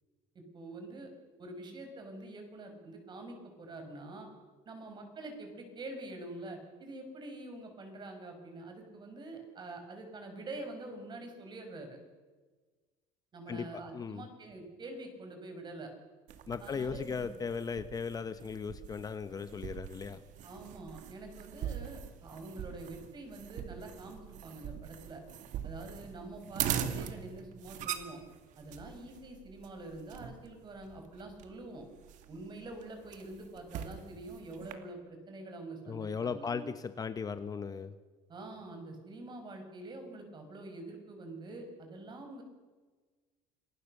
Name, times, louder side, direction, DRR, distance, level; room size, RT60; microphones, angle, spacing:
voice 1, 0.3-1.1 1.4-4.3 4.6-12.0 13.3-15.9 16.6-17.4 20.4-25.2 25.6-28.2 28.6-31.8 32.3-36.7 38.3-42.4, right 2 dB, 30° right, 5 dB, 6.3 m, -46 dB
voice 2, 13.9-14.2 16.5-20.2 35.9-37.9, left 6 dB, 25° left, 11 dB, 1.0 m, -37 dB
sound 1, 16.3-34.7, right 10 dB, 60° right, 2.3 m, -42 dB
26.5 x 19.5 x 6.7 m, 1.4 s
cardioid pair, 125°, 14 cm